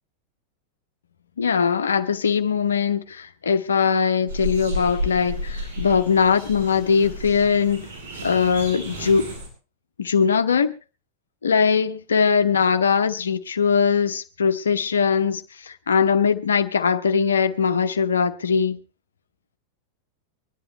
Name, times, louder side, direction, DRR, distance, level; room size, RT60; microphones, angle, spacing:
voice 1, 1.4-7.9 8.2-9.3 10.0-10.7 11.4-18.8, left 6 dB, 70° left, 0.9 m, -21 dB
sound 1, 4.3-9.5, equal, 75° right, 7.6 m, -32 dB
24.5 x 11.0 x 3.0 m
figure-of-eight pair, 90°, 0 cm